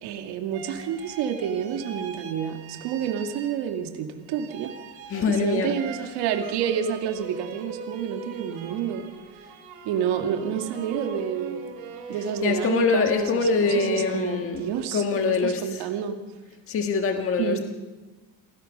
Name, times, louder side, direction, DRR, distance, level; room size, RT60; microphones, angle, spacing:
voice 1, 0.0-4.7 5.3-9.0 9.8-11.6 12.1-16.2 17.4-17.6, right 8 dB, 70° right, 4 dB, 2.5 m, -29 dB
sound 1, 0.5-3.9 4.3-14.9, right 6 dB, 85° right, 3.8 m, -41 dB
voice 2, 5.1-5.8 12.4-14.7 14.9-15.9 16.7-17.6, left 5 dB, 30° left, 4 dB, 1.5 m, -24 dB
27.5 x 19.0 x 5.5 m, 1.2 s
cardioid pair, 155°, 42 cm